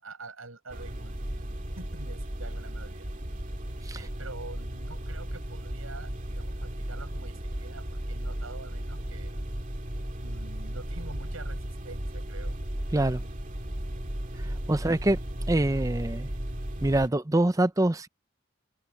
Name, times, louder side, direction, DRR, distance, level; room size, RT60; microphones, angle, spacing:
voice 1, 0.0-3.1 3.9-9.4 10.2-12.6, right 3 dB, 85° right, 6.0 m, -46 dB
sound 1, 0.7-17.1, equal, 40° right, 2.4 m, -35 dB
voice 2, 14.7-15.2 15.5-16.3 16.8-18.1, right 1 dB, 15° right, 0.6 m, -25 dB
open air
head